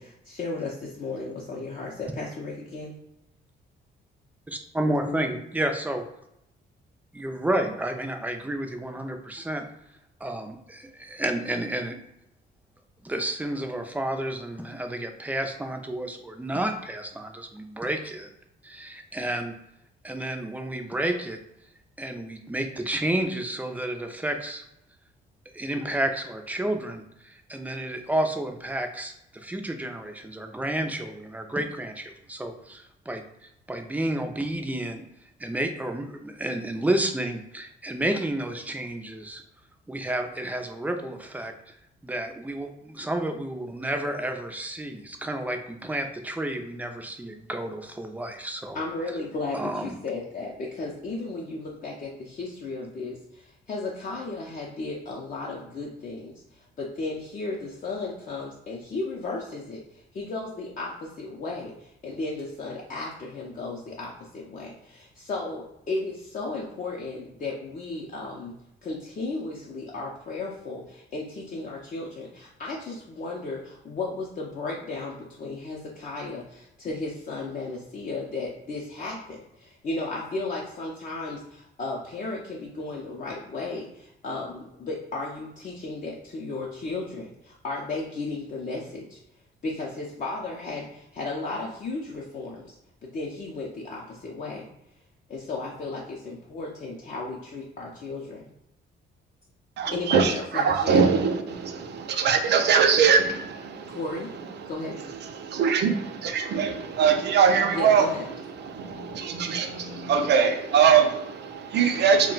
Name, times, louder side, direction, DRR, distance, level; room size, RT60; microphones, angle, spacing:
voice 1, 0.0-2.9 4.9-5.3 48.7-68.5 68.8-89.2 89.6-92.7 93.0-94.7 95.3-98.5 99.9-101.1 103.9-104.3 104.7-105.0 107.7-108.2, left 3 dB, 40° left, 0.5 m, -34 dB
voice 2, 4.5-6.1 7.1-9.7 10.2-12.0 13.0-18.3 18.6-19.6 20.0-21.4 22.0-24.6 25.5-35.0 35.4-39.4 39.9-41.7 42.0-48.8 49.5-50.0, right 1 dB, 10° right, 0.4 m, -31 dB
voice 3, 99.8-104.0 104.6-104.7 105.2-108.1 108.5-112.3, right 6 dB, 60° right, 0.5 m, -22 dB
2.2 x 2.2 x 3.9 m
cardioid pair, 90°, 20 cm